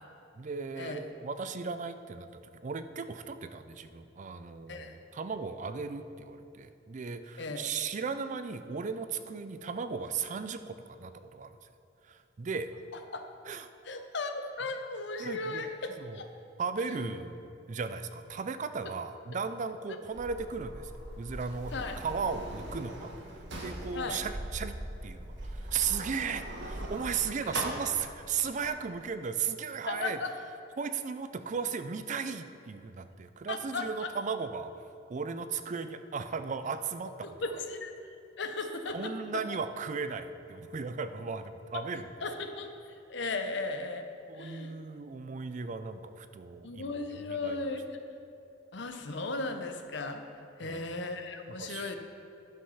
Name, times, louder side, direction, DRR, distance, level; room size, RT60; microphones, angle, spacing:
voice 1, 0.4-11.6 12.1-12.7 13.5-13.6 15.2-15.7 16.0-16.2 16.6-21.7 22.0-23.1 23.3-24.7 25.0-30.2 30.8-34.7 35.1-37.1 38.9-42.1 44.3-46.9 47.3-47.6 50.6-50.8 51.6-51.9, right 5 dB, 40° right, 10 dB, 0.4 m, -36 dB
voice 2, 12.9-13.3 13.8-16.2 18.8-18.9 21.7-22.0 23.9-24.2 27.4-27.6 29.9-30.4 33.5-34.1 37.2-39.6 42.2-44.1 44.3-44.7 46.6-47.9 48.7-52.0, left 3 dB, 65° left, 6 dB, 0.8 m, -37 dB
Sliding door, 20.1-28.7, right 1 dB, 60° right, 1.5 m, -41 dB
11.5 x 5.5 x 5.6 m, 2.7 s
head